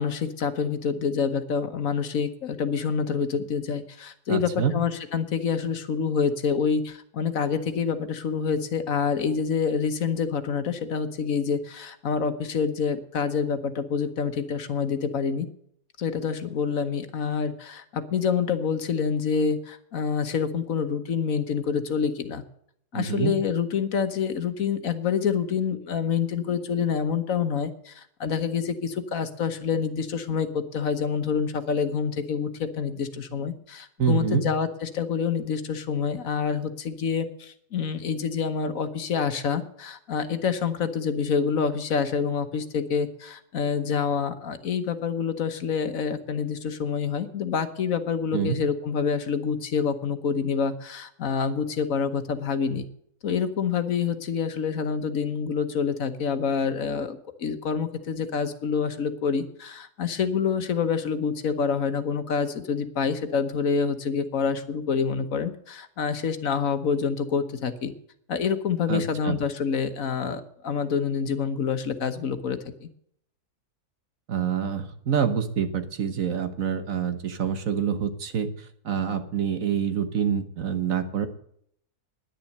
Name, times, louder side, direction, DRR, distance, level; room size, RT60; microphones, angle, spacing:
voice 1, 0.0-15.5 16.0-22.4 22.9-52.9 53.2-67.9 68.3-72.9, left 6 dB, 60° left, 9 dB, 1.4 m, -27 dB
voice 2, 4.3-4.7 22.9-23.3 34.0-34.4 48.3-48.6 68.9-69.4 74.3-81.3, right 7 dB, 60° right, 9 dB, 1.5 m, -26 dB
10.5 x 10.0 x 6.5 m, 0.68 s
omnidirectional pair, 1.6 m